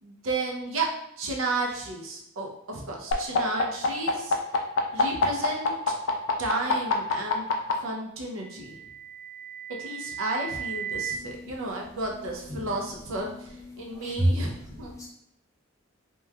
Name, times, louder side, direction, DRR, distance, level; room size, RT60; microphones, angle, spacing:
voice 1, 0.0-0.9 1.2-4.4 4.9-5.9 6.4-7.5 7.8-8.8 9.8-15.1, right 2 dB, 80° right, 0 dB, 0.6 m, -33 dB
sound 1, 3.1-7.7 8.9-11.1, left 3 dB, 70° left, 0.4 m, -27 dB
voice 2, 11.1-11.5 13.7-14.4 14.9-15.1, right 1 dB, 15° left, -3 dB, 0.5 m, -28 dB
3.0 x 2.2 x 2.2 m, 0.78 s
head